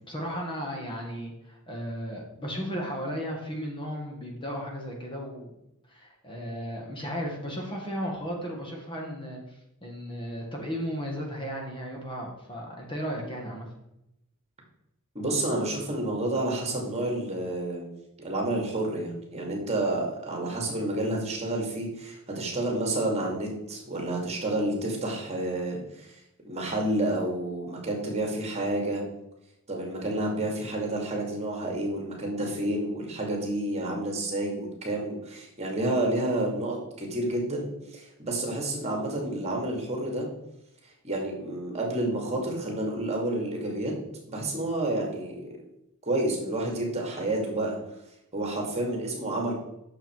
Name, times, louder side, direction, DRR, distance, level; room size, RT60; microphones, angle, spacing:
voice 1, 0.0-5.5 5.9-13.7, equal, 25° left, 0 dB, 1.9 m, -35 dB
voice 2, 15.1-17.9 18.2-26.2 26.4-29.0 29.7-40.3 41.0-43.9 44.3-45.5 46.1-47.8 48.3-49.5, right 1 dB, 30° right, 0 dB, 2.4 m, -29 dB
9.0 x 6.8 x 4.6 m, 0.86 s
head